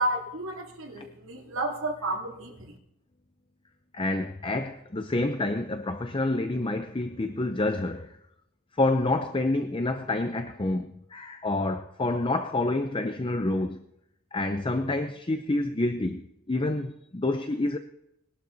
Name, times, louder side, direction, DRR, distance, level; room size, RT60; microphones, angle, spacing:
voice 1, 0.0-2.7, right 1 dB, 70° right, 2.9 m, -31 dB
voice 2, 3.9-8.1 8.8-13.8 14.3-17.8, left 2 dB, 25° left, 0.6 m, -28 dB
20.5 x 12.0 x 4.0 m
head